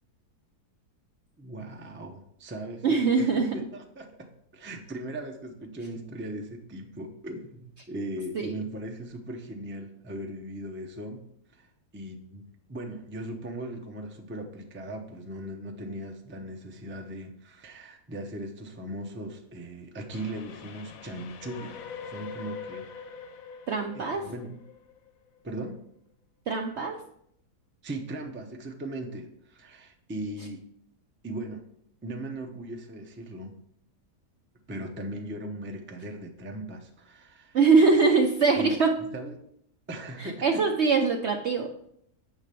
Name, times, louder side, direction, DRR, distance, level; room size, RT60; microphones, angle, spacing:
voice 1, 1.4-11.3 11.5-11.7 11.9-12.4 12.7-23.2 23.9-24.6 25.4-25.8 27.8-30.6 31.2-31.6 32.0-33.6 34.7-37.6 38.6-39.3 39.9-40.6, right 1 dB, 15° right, 3 dB, 0.4 m, -38 dB
voice 2, 2.8-3.6 8.4-8.6 23.7-24.3 26.5-27.0 37.5-39.0 40.2-41.7, right 4 dB, 60° right, 3 dB, 0.7 m, -23 dB
Train, 20.1-25.4, left 6 dB, 65° left, 1.0 m, -43 dB
7.3 x 3.9 x 6.7 m, 0.71 s
omnidirectional pair, 1.7 m